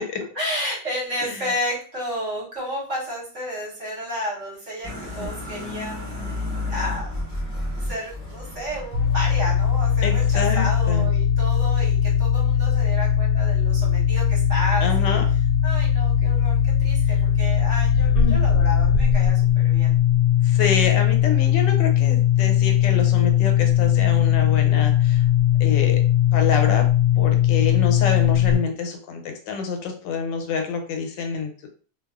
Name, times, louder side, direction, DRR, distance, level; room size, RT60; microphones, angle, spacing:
voice 1, 0.3-7.1 7.7-20.0, equal, 50° right, -5 dB, 1.1 m, -32 dB
sound 1, 4.8-11.1, left 2 dB, 5° left, 0.9 m, -33 dB
sound 2, 8.9-28.6, left 9 dB, 90° right, 1.3 m, -19 dB
voice 2, 10.0-11.1 14.8-15.2 18.2-18.4 20.4-25.3 25.6-26.0 26.3-26.9 27.2-31.7, left 5 dB, 90° left, 4 dB, 1.3 m, -27 dB
2.7 x 2.3 x 2.3 m, 0.41 s
omnidirectional pair, 1.9 m